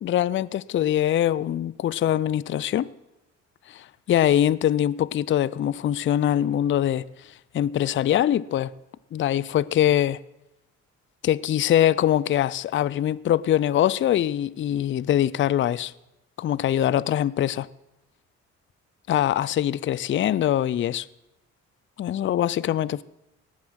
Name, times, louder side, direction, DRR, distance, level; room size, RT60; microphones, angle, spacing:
voice 1, 0.0-2.9 3.7-7.0 7.5-8.7 9.1-10.2 11.2-15.9 16.4-17.7 19.1-21.1 22.0-23.0, left 11 dB, 40° left, 0.4 m, -23 dB
18.5 x 7.1 x 6.3 m
cardioid pair, 90°, 30 cm